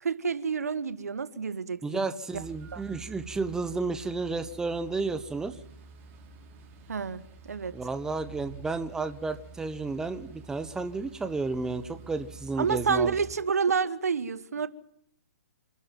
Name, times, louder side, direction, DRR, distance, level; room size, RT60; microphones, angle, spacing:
voice 1, 0.0-2.1 2.3-2.4 2.7-2.8 6.9-7.7 12.6-14.7, right 5 dB, 75° right, 1.4 m, -29 dB
voice 2, 1.8-5.6 7.7-13.2, right 3 dB, 5° right, 1.1 m, -32 dB
sound 1, 2.3-13.3, right 4 dB, 25° right, 5.1 m, -48 dB
27.5 x 13.0 x 9.2 m
hypercardioid pair, 130°, 8 cm